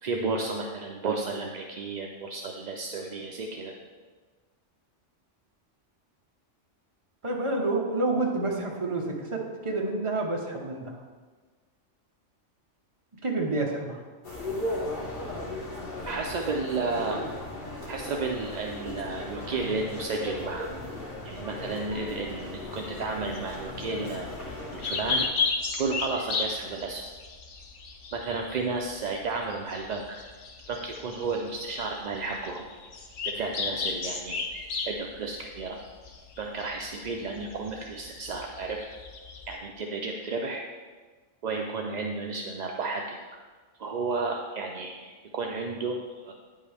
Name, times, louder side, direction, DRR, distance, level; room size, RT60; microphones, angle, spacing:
voice 1, 0.0-3.7 16.0-17.2 17.9-20.7 21.2-24.3 24.7-25.3 25.8-27.0 28.1-30.2 30.7-32.7 33.3-34.4 34.8-35.8 36.4-38.8 39.5-40.6 41.4-43.2 43.8-46.3, right 3 dB, 55° right, 1 dB, 0.5 m, -32 dB
voice 2, 7.2-11.0 13.2-14.0, right 2 dB, 25° right, -1 dB, 1.0 m, -29 dB
sound 1, 14.2-25.3, left 1 dB, 40° left, 1.5 m, -37 dB
sound 2, 23.3-39.6, left 4 dB, 90° left, 1.2 m, -35 dB
9.5 x 5.5 x 3.4 m, 1.4 s
omnidirectional pair, 1.3 m